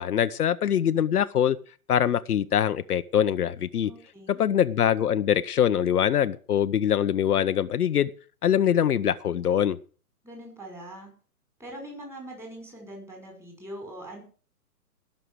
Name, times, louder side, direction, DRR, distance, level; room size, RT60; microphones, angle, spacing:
voice 1, 0.0-1.6 1.9-3.9 4.4-8.1 8.4-9.8, left 9 dB, 75° left, 11 dB, 0.9 m, -23 dB
voice 2, 3.8-4.4 10.2-11.1 11.6-14.2, right 1 dB, 5° right, 0 dB, 5.3 m, -42 dB
17.5 x 6.8 x 6.3 m, 0.40 s
hypercardioid pair, 140°, 45 cm